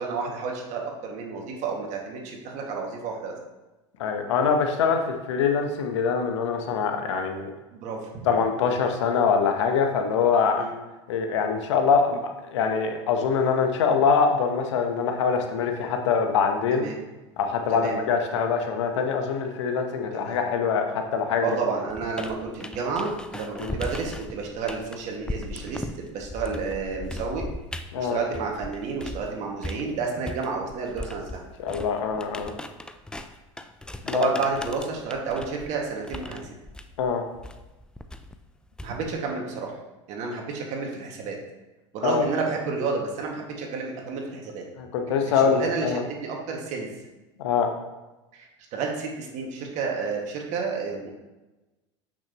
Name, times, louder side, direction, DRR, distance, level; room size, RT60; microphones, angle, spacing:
voice 1, 0.0-3.3 7.7-8.3 10.6-10.7 16.7-17.0 17.7-18.0 20.1-20.4 21.4-27.5 28.0-31.4 34.1-36.5 38.8-39.7 40.1-41.4 41.9-44.6 45.3-45.9 46.2-46.9 48.3-51.1, right 4 dB, 50° right, 0 dB, 2.0 m, -31 dB
voice 2, 4.0-7.5 8.2-10.7 11.1-16.9 17.4-21.5 23.6-23.8 27.9-28.2 31.6-32.5 34.0-34.3 37.0-37.2 42.0-42.2 44.8-46.0 47.4-47.7, left 6 dB, 75° left, 5 dB, 1.0 m, -24 dB
sound 1, 21.9-29.3 29.6-39.2, left 1 dB, 5° left, 0.5 m, -38 dB
8.5 x 6.1 x 3.0 m, 1.1 s
hypercardioid pair, 85°, 15 cm